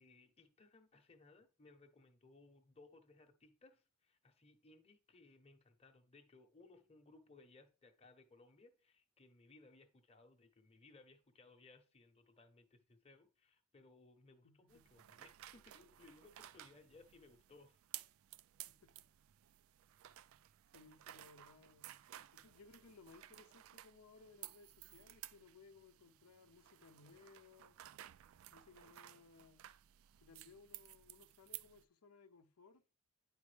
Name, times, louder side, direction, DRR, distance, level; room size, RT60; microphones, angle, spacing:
voice 1, 0.0-17.8, left 3 dB, 25° left, 0.8 m, -64 dB
voice 2, 14.4-14.8 18.7-19.1 20.7-21.9 22.3-27.8 28.5-29.7 30.2-32.8, left 4 dB, 85° left, 0.7 m, -63 dB
sound 1, 14.7-31.8, right 14 dB, 65° right, 0.3 m, -56 dB
9.6 x 4.8 x 3.3 m
head